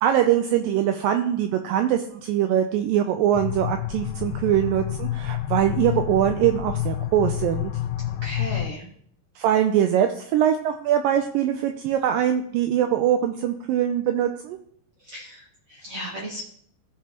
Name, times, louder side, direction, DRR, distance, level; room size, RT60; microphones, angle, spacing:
voice 1, 0.0-7.7 9.4-14.6, right 10 dB, 80° right, 6 dB, 2.1 m, -22 dB
sound 1, 3.3-8.7, left 12 dB, 85° left, 2.4 m, -29 dB
voice 2, 8.2-8.9 15.0-16.4, equal, 55° right, -3 dB, 1.5 m, -35 dB
15.0 x 5.5 x 2.9 m, 0.64 s
omnidirectional pair, 4.3 m